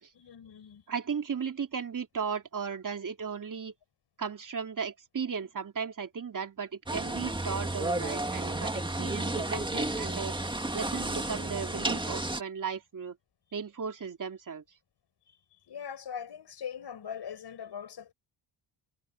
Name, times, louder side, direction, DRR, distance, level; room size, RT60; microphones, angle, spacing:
voice 1, 0.1-0.8 15.3-15.4 15.7-18.1, left 8 dB, 55° left, 6.0 m, -41 dB
voice 2, 0.9-3.7 4.2-10.4 10.7-13.2 13.5-14.6, right 6 dB, 40° right, 2.9 m, -36 dB
sound 1, 6.9-12.4, right 2 dB, 10° right, 2.1 m, -32 dB
cardioid pair, 85°, 49 cm